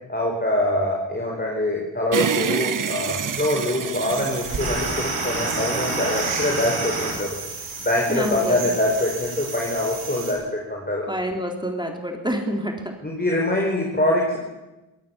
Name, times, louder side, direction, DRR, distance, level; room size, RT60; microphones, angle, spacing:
voice 1, 0.1-7.4 7.8-11.1 13.0-14.4, left 1 dB, 20° left, 0 dB, 4.9 m, -24 dB
sound 1, 2.1-5.6, right 7 dB, 40° right, 0.8 m, -27 dB
sound 2, 4.1-10.3, right 3 dB, 85° right, 5.7 m, -29 dB
voice 2, 8.1-8.7 11.1-12.9, equal, 10° right, 2 dB, 3.8 m, -27 dB
23.0 x 17.5 x 7.2 m, 1.1 s
cardioid pair, 55°, 48 cm